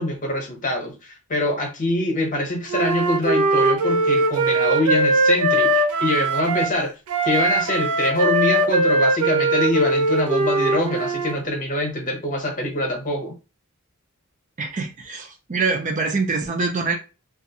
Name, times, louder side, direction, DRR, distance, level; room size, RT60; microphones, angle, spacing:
voice 1, 0.0-6.9 7.2-13.3, left 1 dB, 35° left, 0.9 m, -24 dB
Wind instrument woodwind instrument, 2.7-6.7 7.1-11.3, right 2 dB, 85° right, 0.5 m, -20 dB
voice 2, 14.6-16.9, right 4 dB, 35° right, 0.5 m, -24 dB
3.0 x 2.4 x 2.8 m
head